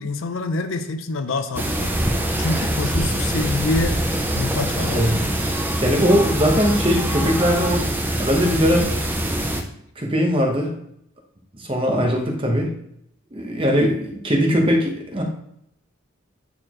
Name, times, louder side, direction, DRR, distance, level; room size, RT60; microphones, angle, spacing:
voice 1, 0.0-1.9 2.4-4.0 4.3-5.1, left 3 dB, 65° left, 9 dB, 0.5 m, -26 dB
sound 1, 1.5-9.6, right 1 dB, 10° right, 0.5 m, -23 dB
voice 2, 5.8-7.9 8.2-8.9 10.0-10.7 11.5-12.7 13.3-15.2, equal, 25° right, 1 dB, 1.0 m, -20 dB
8.9 x 4.1 x 3.0 m, 0.73 s
head